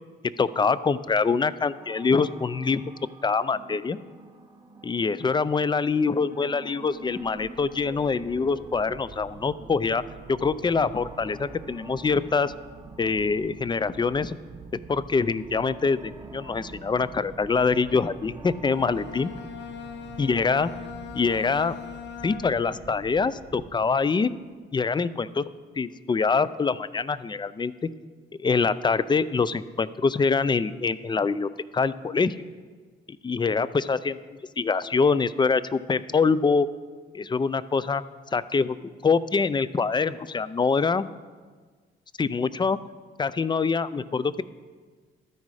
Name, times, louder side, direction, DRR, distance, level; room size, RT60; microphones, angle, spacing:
voice 1, 0.4-2.8 3.2-4.0 4.8-10.0 10.3-12.5 13.0-14.3 14.9-19.3 20.2-20.7 21.1-21.7 22.2-24.3 24.7-25.4 25.8-27.7 28.4-32.3 33.2-34.2 34.6-36.7 37.1-38.0 38.3-41.1 42.2-42.8 43.2-44.4, left 4 dB, 25° left, 17 dB, 0.4 m, -24 dB
sound 1, 1.8-20.4, right 3 dB, 20° right, 1.1 m, -49 dB
sound 2, 7.0-24.3, right 4 dB, 40° right, 0.9 m, -47 dB
Bowed string instrument, 18.6-22.8, left 7 dB, 60° left, 0.9 m, -40 dB
13.0 x 9.5 x 4.9 m, 1.5 s
cardioid pair, 90°, 20 cm